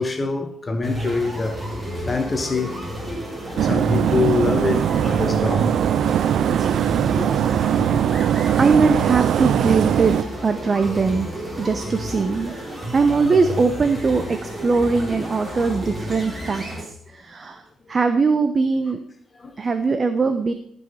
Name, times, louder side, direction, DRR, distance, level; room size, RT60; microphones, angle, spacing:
voice 1, 0.0-1.6 2.0-2.7 3.6-5.8 6.5-6.6 7.1-7.6 12.2-12.3 12.8-12.9 19.4-19.7, left 4 dB, 25° left, 1.2 m, -25 dB
sound 1, 0.8-16.8, equal, 20° right, 3.6 m, -31 dB
sound 2, 3.6-10.2, right 10 dB, 70° right, 0.3 m, -20 dB
voice 2, 7.8-8.1 8.6-10.2 10.4-11.3 11.6-12.5 12.9-17.6 17.9-19.0 19.6-20.5, right 4 dB, 35° right, 0.9 m, -21 dB
14.0 x 5.6 x 5.7 m
cardioid pair, 90°, 0 cm